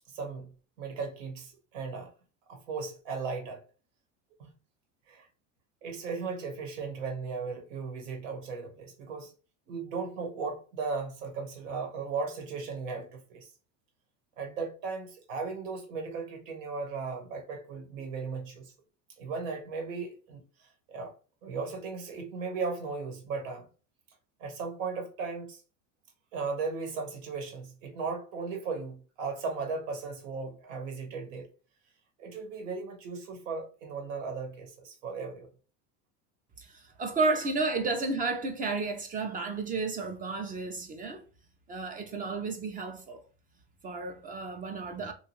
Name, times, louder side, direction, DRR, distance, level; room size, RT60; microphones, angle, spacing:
voice 1, 0.1-2.1 2.5-3.6 4.4-4.5 5.1-5.3 5.8-9.3 9.7-13.5 14.4-18.7 19.2-21.1 21.4-23.7 24.4-25.6 26.3-31.5 32.2-35.5, right 4 dB, 90° right, 1.1 m, -36 dB
voice 2, 36.6-41.2 41.7-43.2 43.8-45.1, right 3 dB, 25° right, 0.4 m, -32 dB
2.9 x 2.3 x 2.9 m
supercardioid pair, 125°, 37 cm